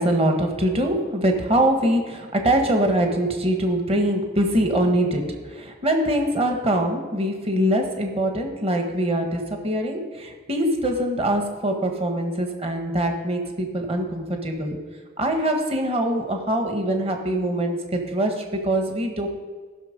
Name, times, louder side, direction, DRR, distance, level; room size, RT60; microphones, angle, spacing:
voice 1, 0.0-14.8 15.2-19.3, right 1 dB, 30° right, 3 dB, 1.3 m, -23 dB
15.0 x 6.4 x 5.2 m, 1.4 s
head